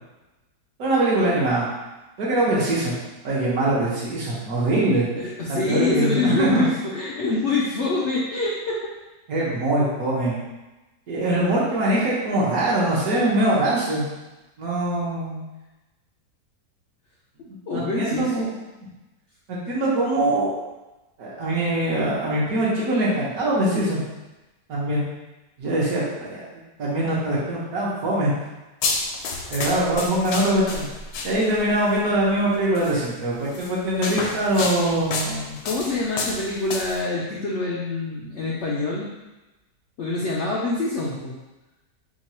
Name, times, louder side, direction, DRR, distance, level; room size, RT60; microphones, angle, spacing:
voice 1, 0.8-1.7 2.2-3.0 3.2-5.1 5.5-6.6 9.3-10.4 11.1-14.1 14.6-15.4 17.5-18.4 19.5-20.5 21.2-24.0 24.7-25.0 25.6-26.4 26.8-28.3 29.5-30.9 31.2-35.6, right 1 dB, 60° right, -6 dB, 1.5 m, -23 dB
voice 2, 5.2-8.8 17.7-18.5 34.0-34.4 35.6-39.0 40.0-41.3, left 3 dB, 65° left, -6 dB, 0.7 m, -26 dB
sound 1, 28.8-31.7 32.8-33.0 33.5-37.0, left 3 dB, 90° left, 1.2 m, -30 dB
3.6 x 2.3 x 4.2 m, 1.1 s
omnidirectional pair, 1.8 m